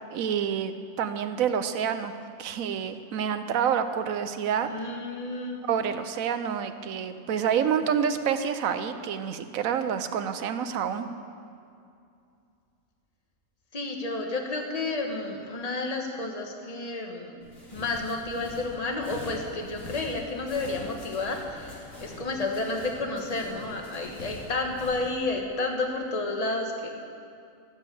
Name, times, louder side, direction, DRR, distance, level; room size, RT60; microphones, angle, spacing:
voice 1, 0.1-2.1 2.4-4.7 5.7-11.1, right 8 dB, 75° right, 10 dB, 1.1 m, -28 dB
voice 2, 4.6-5.6 13.7-17.4 17.7-26.9, left 3 dB, 30° left, 2 dB, 1.3 m, -31 dB
sound 1, 17.4-25.2, left 1 dB, 70° left, 2.9 m, -44 dB
13.0 x 7.4 x 8.2 m, 2.5 s
omnidirectional pair, 1.4 m